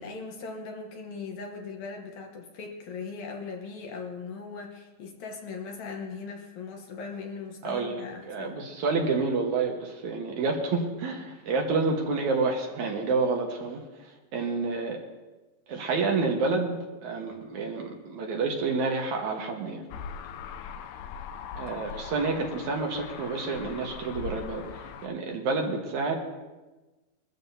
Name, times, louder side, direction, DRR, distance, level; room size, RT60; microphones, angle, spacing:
voice 1, 0.0-8.6 21.7-21.9, left 4 dB, 65° left, 2 dB, 2.3 m, -39 dB
voice 2, 7.6-13.8 14.3-15.0 15.7-19.8 21.6-26.2, right 4 dB, 65° right, 1 dB, 2.6 m, -29 dB
sound 1, 19.9-25.1, left 6 dB, 85° left, 2.3 m, -40 dB
22.5 x 13.5 x 2.8 m, 1.2 s
omnidirectional pair, 3.9 m